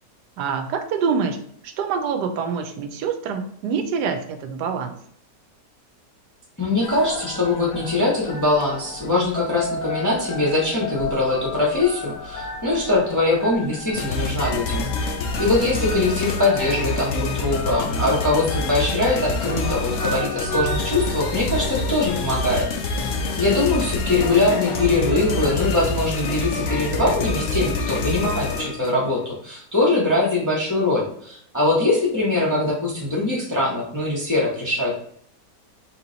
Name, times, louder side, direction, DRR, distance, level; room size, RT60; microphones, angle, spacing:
voice 1, 0.4-1.4 1.6-5.0, right 6 dB, 80° right, 7 dB, 1.2 m, -25 dB
voice 2, 6.6-15.1 15.4-23.1 23.4-35.0, left 2 dB, 15° left, -4 dB, 0.7 m, -22 dB
sound 1, 6.8-25.7, left 2 dB, 80° left, 1.3 m, -33 dB
sound 2, 13.9-29.0, left 3 dB, 60° left, 0.8 m, -27 dB
3.8 x 3.0 x 3.9 m, 0.66 s
omnidirectional pair, 1.8 m